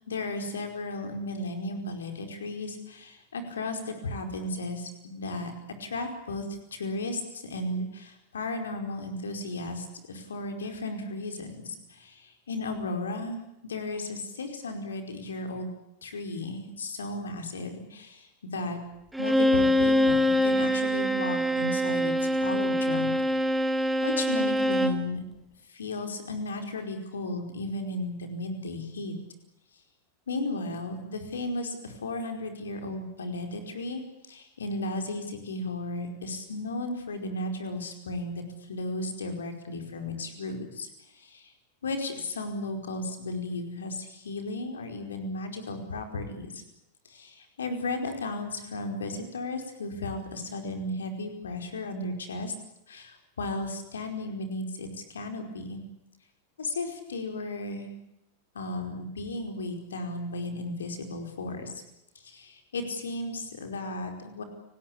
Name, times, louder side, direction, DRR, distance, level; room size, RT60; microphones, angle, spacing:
voice 1, 0.1-5.5 5.8-6.5 6.7-13.4 13.6-15.7 16.0-18.8 19.2-23.1 23.5-23.6 24.0-25.2 25.7-29.2 30.3-40.9 41.1-41.5 41.8-46.6 47.0-52.5 52.9-55.8 56.6-57.9 58.5-61.8 62.2-64.4, left 2 dB, 70° left, 5 dB, 4.9 m, -35 dB
Bowed string instrument, 19.1-25.1, equal, 5° right, 1.9 m, -24 dB
30.0 x 19.0 x 8.6 m, 0.86 s
figure-of-eight pair, 90°, 0 cm